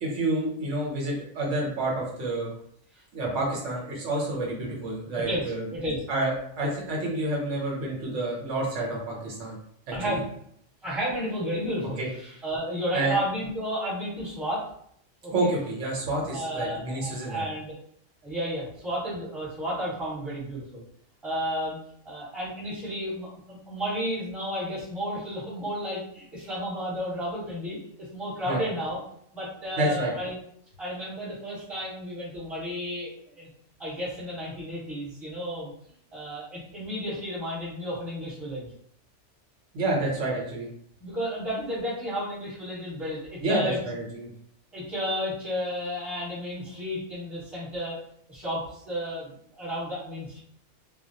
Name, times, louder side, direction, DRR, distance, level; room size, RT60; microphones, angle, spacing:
voice 1, 0.0-2.5 3.1-5.7 6.1-9.6 9.9-10.2 12.0-12.1 12.9-13.2 15.3-17.5 28.4-28.6 29.8-30.1 39.7-40.7 43.4-44.3, right 2 dB, 75° right, -2 dB, 1.0 m, -29 dB
voice 2, 5.1-6.0 9.9-10.3 10.8-14.7 15.2-15.5 16.3-17.7 18.2-20.8 21.2-21.8 22.0-29.0 29.3-30.4 30.8-33.5 33.8-35.7 36.1-38.7 41.0-43.8 44.7-48.0 48.3-50.4, equal, ahead, -9 dB, 1.0 m, -32 dB
2.2 x 2.1 x 2.7 m, 0.67 s
omnidirectional pair, 1.3 m